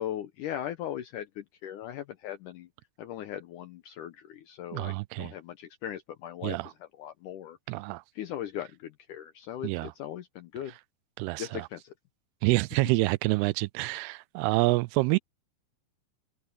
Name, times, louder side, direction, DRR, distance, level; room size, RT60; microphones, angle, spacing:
voice 1, 0.0-2.7 3.0-7.8 8.1-10.7 11.4-11.9, left 11 dB, 75° left, 1.9 m, -39 dB
voice 2, 4.7-5.3 6.4-6.7 7.7-8.0 9.6-9.9 11.2-11.7 12.4-15.2, right 23 dB, 90° right, 2.6 m, -27 dB
omnidirectional pair, 4.5 m